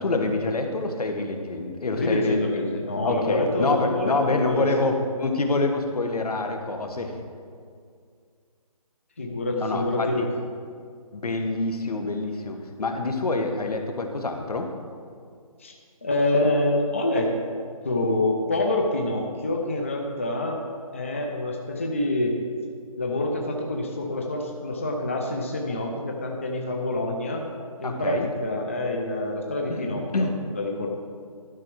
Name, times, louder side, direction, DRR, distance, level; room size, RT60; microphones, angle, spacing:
voice 1, 0.0-2.7 3.0-7.2 9.6-10.3 11.1-14.7 27.8-28.3 29.7-30.4, left 2 dB, 80° left, 5 dB, 1.3 m, -26 dB
voice 2, 2.0-4.9 9.2-10.2 15.6-15.7 16.0-17.3 17.8-20.6 20.9-22.4 22.9-27.4 27.8-30.3 30.5-30.9, left 2 dB, 20° left, 1 dB, 0.5 m, -26 dB
12.0 x 5.9 x 4.7 m, 2.2 s
hypercardioid pair, 170°, 19 cm